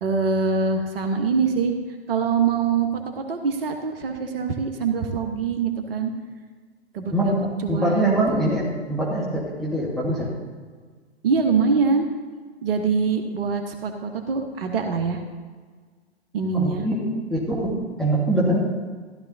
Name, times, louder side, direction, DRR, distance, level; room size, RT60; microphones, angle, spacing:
voice 1, 0.0-1.7 2.1-2.9 3.3-6.1 6.9-7.4 7.6-8.4 11.2-12.1 12.6-15.2 16.3-16.8, right 5 dB, 60° right, 5 dB, 1.3 m, -23 dB
voice 2, 7.7-10.3 16.5-17.0 17.3-18.6, right 1 dB, ahead, -7 dB, 1.7 m, -23 dB
16.0 x 12.0 x 2.7 m, 1.5 s
figure-of-eight pair, 115°, 33 cm